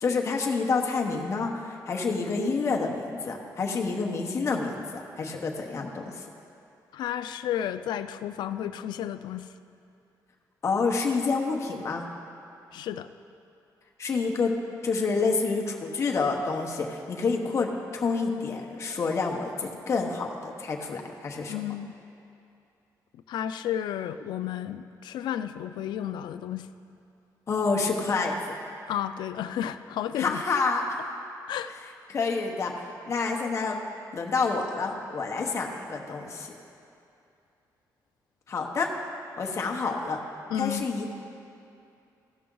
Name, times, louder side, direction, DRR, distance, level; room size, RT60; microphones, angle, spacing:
voice 1, 0.0-6.1 10.6-12.1 14.0-14.5 14.8-21.6 27.5-28.4 30.2-30.8 32.1-32.7 33.1-33.8 34.1-36.5 38.5-38.9 39.4-40.2 40.6-41.1, left 4 dB, 40° left, 1 dB, 1.0 m, -28 dB
voice 2, 6.9-9.5 12.7-13.1 21.5-21.9 23.3-26.7 28.9-30.4 31.5-31.7 40.5-40.9, left 10 dB, 90° left, 11 dB, 0.4 m, -32 dB
15.5 x 5.9 x 3.8 m, 2.6 s
cardioid pair, 130°, 7 cm